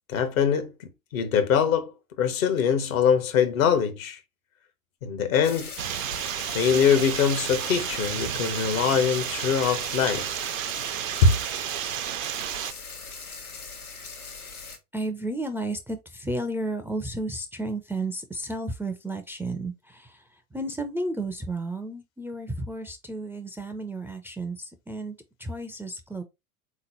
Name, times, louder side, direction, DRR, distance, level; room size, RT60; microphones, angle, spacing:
voice 1, 0.1-4.2 5.0-5.7 6.5-10.3 11.2-11.3, left 6 dB, 65° left, 1.1 m, -23 dB
sound 1, 5.4-14.8, left 4 dB, 90° left, 1.0 m, -40 dB
sound 2, 5.8-12.7, right 12 dB, 65° right, 0.6 m, -32 dB
voice 2, 14.9-26.2, right 2 dB, 5° right, 0.4 m, -33 dB
3.9 x 3.1 x 3.9 m
figure-of-eight pair, 75°, 43 cm